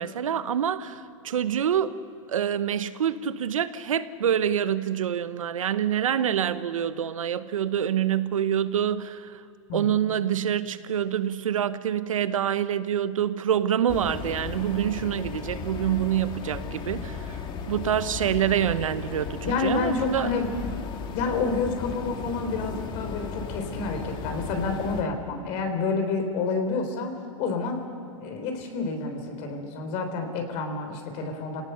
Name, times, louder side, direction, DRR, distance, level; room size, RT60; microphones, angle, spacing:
voice 1, 0.0-1.9 2.3-9.4 9.7-20.3, right 9 dB, 90° right, 14 dB, 1.0 m, -26 dB
voice 2, 9.7-10.0 19.4-20.8 21.1-27.1 27.4-27.8 28.2-31.6, left 4 dB, 45° left, 5 dB, 3.5 m, -29 dB
sound 1, 13.9-25.0, left 5 dB, 30° left, 1.9 m, -36 dB
27.5 x 18.0 x 6.7 m, 2.3 s
hypercardioid pair, 130°, 17 cm